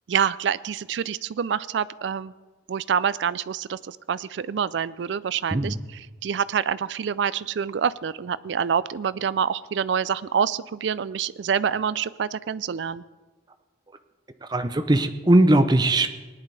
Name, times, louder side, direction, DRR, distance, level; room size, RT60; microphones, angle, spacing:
voice 1, 0.1-2.3 2.7-5.8 6.2-13.0, right 7 dB, 65° right, 18 dB, 0.4 m, -26 dB
voice 2, 14.4-16.1, right 1 dB, 20° right, 8 dB, 0.6 m, -19 dB
18.5 x 10.5 x 3.3 m, 1.3 s
head